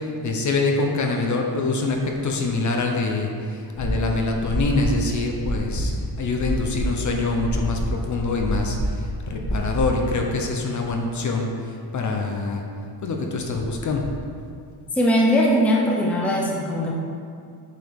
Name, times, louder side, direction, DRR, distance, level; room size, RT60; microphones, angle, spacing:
voice 1, 0.2-2.0 2.2-3.3 3.8-5.9 6.2-8.8 9.3-11.5 11.9-12.6 13.0-14.0, left 3 dB, 45° left, 2 dB, 0.7 m, -24 dB
sound 1, 3.8-10.1, equal, 65° left, 1.6 m, -28 dB
voice 2, 15.0-16.9, equal, 5° left, -3 dB, 0.5 m, -20 dB
7.6 x 4.9 x 3.6 m, 2.3 s
wide cardioid pair, 165°, 42 cm